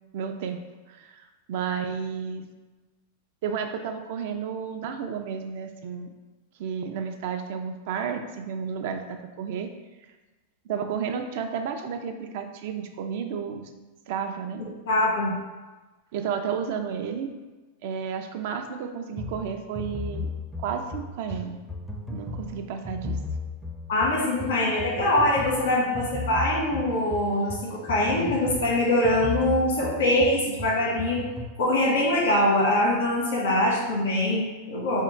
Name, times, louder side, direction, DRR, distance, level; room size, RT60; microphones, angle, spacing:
voice 1, 0.1-0.6 0.9-2.4 3.4-6.1 6.6-9.7 10.7-13.7 14.1-14.6 16.1-17.3 17.8-20.3 20.6-21.6 22.1-23.2, right 7 dB, 65° right, 5 dB, 0.4 m, -32 dB
voice 2, 14.9-15.3 23.9-31.2 31.6-35.0, left 1 dB, 90° left, -3 dB, 1.5 m, -23 dB
sound 1, 19.2-31.6, left 3 dB, ahead, 0.4 m, -36 dB
3.6 x 2.2 x 4.4 m, 1.2 s
hypercardioid pair, 130°, 0 cm